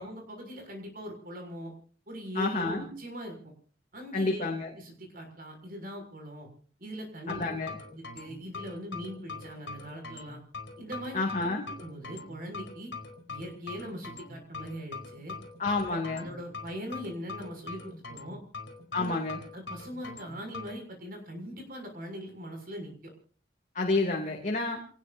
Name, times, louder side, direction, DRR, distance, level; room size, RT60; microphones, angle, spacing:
voice 1, 0.0-1.7 2.1-3.5 3.9-4.4 4.7-6.5 6.8-7.4 7.9-10.4 10.8-11.2 11.8-12.9 13.3-15.4 15.9-18.4 18.9-19.1 19.5-23.1, equal, 50° right, 3 dB, 6.8 m, -41 dB
voice 2, 2.3-2.9 4.1-4.7 7.4-7.7 11.1-11.6 15.6-16.2 18.9-19.4 23.7-24.8, left 3 dB, 40° left, 1 dB, 2.8 m, -29 dB
sound 1, 7.3-20.8, left 4 dB, 70° left, 4.3 m, -43 dB
27.5 x 19.5 x 2.7 m, 0.43 s
head